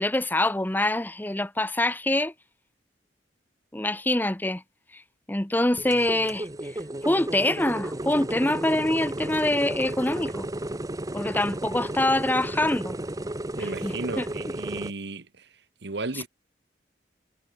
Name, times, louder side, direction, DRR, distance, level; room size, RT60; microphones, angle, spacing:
voice 1, 0.0-2.3 3.7-4.6 4.9-5.0 5.3-6.7 7.0-10.5 11.1-13.0 13.6-14.3 16.1-16.2, left 1 dB, 10° left, 0.9 m, -25 dB
sound 1, 5.8-14.9, right 1 dB, 20° right, 0.9 m, -33 dB
voice 2, 13.6-15.3 15.8-16.3, right 3 dB, 75° right, 1.2 m, -34 dB
head